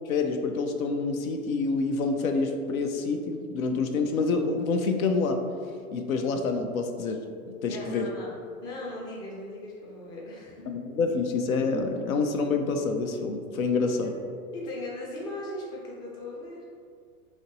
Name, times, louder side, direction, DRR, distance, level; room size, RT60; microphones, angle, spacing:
voice 1, 0.1-5.4 5.9-8.1 10.7-14.2, left 4 dB, 70° left, 5 dB, 0.5 m, -27 dB
voice 2, 7.6-8.3 8.6-10.7 14.0-14.1 14.5-16.6, left 1 dB, 10° left, -4 dB, 0.4 m, -38 dB
4.0 x 2.9 x 3.0 m, 2.2 s
figure-of-eight pair, 90°, 44 cm